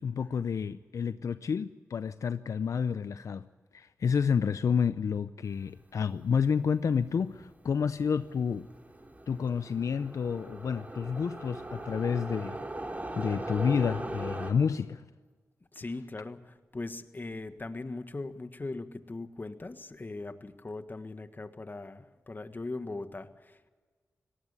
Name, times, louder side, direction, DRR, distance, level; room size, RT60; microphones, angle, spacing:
voice 1, 0.0-8.6 9.3-12.6 13.2-15.0, left 6 dB, 70° left, 13 dB, 0.6 m, -30 dB
sound 1, 6.8-6.9 7.2-14.5, right 2 dB, 25° right, 2.8 m, -40 dB
voice 2, 15.7-23.7, left 2 dB, 35° left, 10 dB, 1.6 m, -40 dB
18.5 x 18.0 x 8.4 m, 1.4 s
cardioid pair, 50°, 6 cm